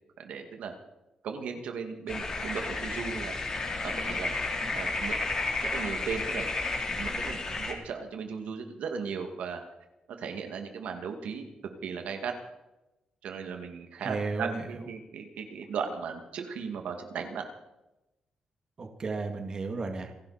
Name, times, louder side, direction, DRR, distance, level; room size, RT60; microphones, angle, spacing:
voice 1, 0.2-0.7 1.2-3.4 3.8-4.3 4.7-5.3 5.6-6.5 7.0-9.6 10.1-11.5 11.8-12.3 13.2-17.5, right 6 dB, 80° right, 5 dB, 2.3 m, -36 dB
sound 1, 2.1-7.7, left 3 dB, 35° left, 3.7 m, -32 dB
voice 2, 14.0-14.9 18.8-20.2, right 3 dB, 35° right, 4 dB, 2.0 m, -34 dB
28.0 x 12.0 x 4.4 m, 0.95 s
cardioid pair, 135°, 2 cm